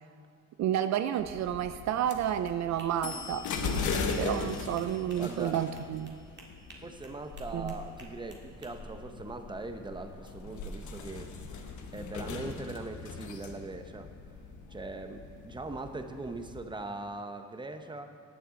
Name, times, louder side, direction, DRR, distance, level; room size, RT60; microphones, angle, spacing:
voice 1, 0.6-6.1 7.5-7.7, right 10 dB, 65° right, 10 dB, 0.4 m, -31 dB
sound 1, 1.2-16.6, left 4 dB, 75° left, 1.2 m, -39 dB
sound 2, 2.8-8.7, right 2 dB, 35° right, 1.8 m, -54 dB
voice 2, 5.2-5.6 6.8-11.3 11.9-14.1 14.7-18.1, right 2 dB, 15° right, 7 dB, 0.9 m, -40 dB
19.0 x 6.8 x 3.8 m, 2.3 s
cardioid pair, 90°, 30 cm